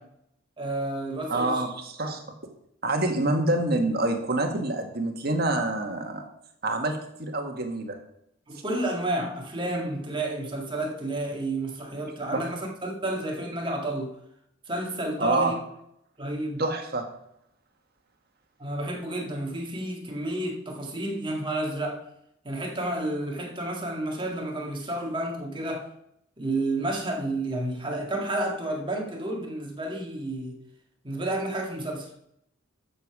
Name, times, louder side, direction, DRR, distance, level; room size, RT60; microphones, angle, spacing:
voice 1, 0.6-1.6 2.0-2.1 8.5-14.1 14.7-15.6 16.2-16.6 18.6-22.0 22.4-25.9 26.4-30.6 31.0-32.1, right 1 dB, 25° right, 2.1 m, -31 dB
voice 2, 1.3-2.2 2.8-6.3 6.6-8.0 12.3-12.5 15.2-15.5 16.6-17.0, right 2 dB, 50° right, 1.7 m, -26 dB
12.5 x 7.1 x 4.8 m
head